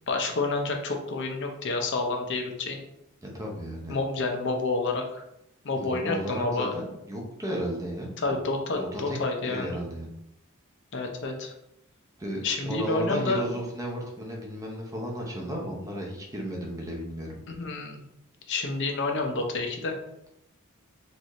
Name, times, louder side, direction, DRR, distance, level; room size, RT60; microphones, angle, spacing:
voice 1, 0.1-2.8 3.9-5.2 5.6-6.7 8.2-9.7 10.9-11.5 12.4-13.4 17.5-18.1 18.5-19.9, left 3 dB, 55° left, 3 dB, 0.6 m, -29 dB
voice 2, 3.2-3.9 5.7-8.3 8.8-9.2 9.4-10.1 12.2-17.4, equal, 15° right, -1 dB, 0.7 m, -34 dB
4.1 x 2.6 x 3.0 m, 0.82 s
head